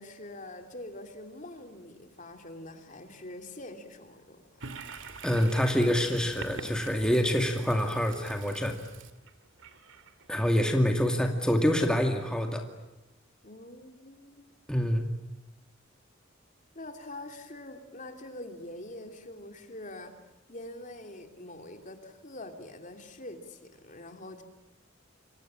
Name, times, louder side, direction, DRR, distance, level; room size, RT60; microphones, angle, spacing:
voice 1, 0.0-4.7 13.4-14.7 16.7-20.1 20.5-24.4, left 1 dB, 40° left, 6 dB, 3.1 m, -44 dB
Toilet flush, 4.6-11.1, right 4 dB, 70° right, 2.3 m, -46 dB
voice 2, 5.2-8.8 10.3-12.7 14.7-15.0, equal, 5° left, 3 dB, 2.3 m, -26 dB
27.5 x 24.5 x 8.9 m, 0.96 s
head